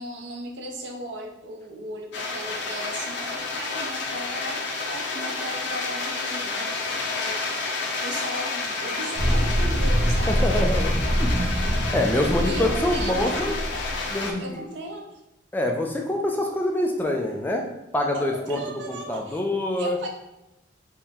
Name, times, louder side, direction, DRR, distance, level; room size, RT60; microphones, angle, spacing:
voice 1, 0.0-7.6 7.8-10.4 12.4-13.9 14.4-15.1 18.1-19.4 19.8-20.1, right 1 dB, 65° right, 2 dB, 0.6 m, -37 dB
sound 1, 2.1-14.3, left 3 dB, 65° left, 0.6 m, -30 dB
sound 2, 9.1-14.3, equal, 40° right, 1.0 m, -24 dB
voice 2, 10.3-11.4 11.9-13.6 14.1-14.6 15.5-17.7 17.9-18.6 18.9-20.0, left 1 dB, 10° left, 2 dB, 0.3 m, -25 dB
4.4 x 2.1 x 3.4 m, 0.93 s
head